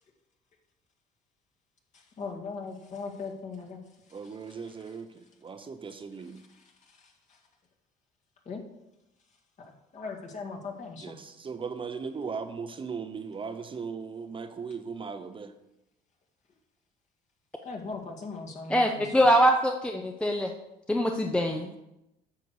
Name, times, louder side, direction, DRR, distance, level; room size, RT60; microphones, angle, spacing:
voice 1, 1.9-3.8 4.1-4.8 6.2-7.4 8.5-8.6 9.6-11.2 17.6-19.1 21.4-21.5, left 4 dB, 45° left, 1 dB, 1.9 m, -40 dB
voice 2, 4.1-6.4 11.0-15.5, right 5 dB, 30° right, 8 dB, 0.7 m, -38 dB
voice 3, 18.7-20.5 20.9-21.7, equal, 5° left, 3 dB, 0.6 m, -23 dB
9.5 x 6.5 x 4.7 m, 0.90 s
cardioid pair, 110°, 17 cm